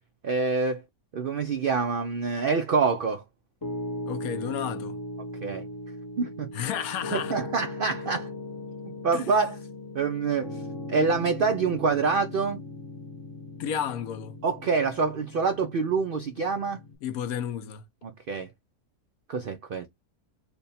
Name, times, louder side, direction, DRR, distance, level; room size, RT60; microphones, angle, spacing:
voice 1, 0.2-0.8 1.1-3.2 5.4-5.6 6.2-6.5 7.1-8.3 9.0-9.6 9.9-10.6 10.9-12.6 14.4-16.8 18.0-18.5 19.3-19.9, right 4 dB, 75° right, 0.5 m, -26 dB
Piano, 3.6-17.0, left 1 dB, 30° left, 0.4 m, -38 dB
voice 2, 4.1-5.0 6.5-7.4 8.0-8.1 9.1-9.2 13.6-14.4 17.0-17.8, left 9 dB, 75° left, 1.1 m, -32 dB
3.4 x 2.2 x 4.0 m
omnidirectional pair, 1.6 m